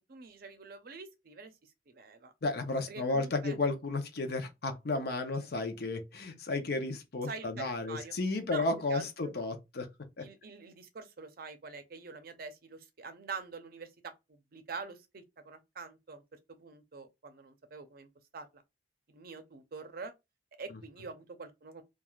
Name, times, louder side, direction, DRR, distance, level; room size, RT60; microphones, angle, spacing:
voice 1, 0.1-1.5 1.9-2.3 2.9-3.5 5.4-5.5 7.2-8.2 8.5-9.3 10.2-16.2 16.5-18.6 19.1-20.1 20.6-21.8, right 4 dB, 55° right, 0.5 m, -45 dB
voice 2, 2.4-9.9 10.2-10.3 20.7-20.8, left 3 dB, 60° left, 0.6 m, -33 dB
3.2 x 2.3 x 2.3 m
head